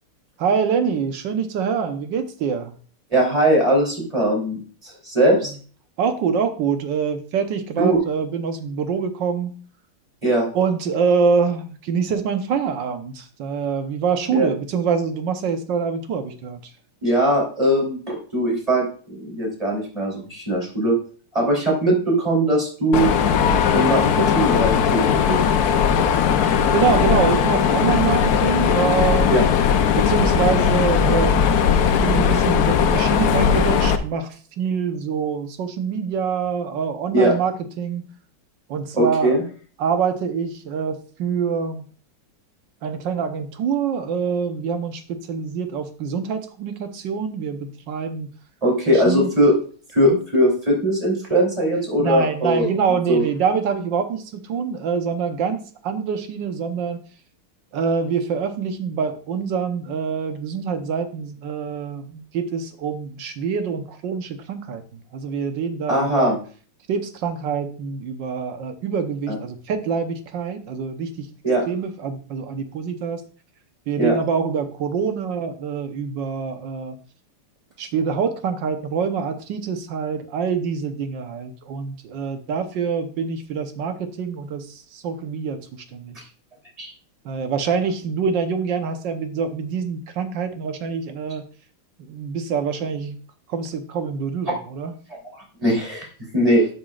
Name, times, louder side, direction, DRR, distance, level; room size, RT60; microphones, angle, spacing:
voice 1, 0.4-2.7 5.4-5.6 6.0-9.6 10.5-16.6 26.7-29.3 29.9-31.6 32.0-37.5 37.8-38.1 38.7-39.4 39.8-41.8 42.8-48.3 48.9-49.3 50.0-50.2 52.0-57.0 57.7-66.4 66.9-71.3 71.7-73.2 73.9-77.0 77.8-86.3 87.2-91.5 92.0-93.2 93.5-94.9, right 6 dB, 60° right, 7 dB, 1.5 m, -25 dB
voice 2, 3.1-5.5 7.8-8.0 10.2-10.5 14.3-14.5 17.0-21.0 21.3-23.1 23.7-25.4 29.3-29.4 37.1-37.3 38.9-39.4 48.6-49.5 49.9-52.7 53.1-53.2 65.9-66.4 69.3-69.4 71.4-71.6 74.0-74.1 86.8-86.9 95.6-96.1 96.3-96.7, right 1 dB, 15° right, -2 dB, 3.3 m, -20 dB
Mechanisms, 22.9-34.0, left 7 dB, 70° left, 0.9 m, -18 dB
12.5 x 6.3 x 2.4 m, 0.41 s
omnidirectional pair, 2.4 m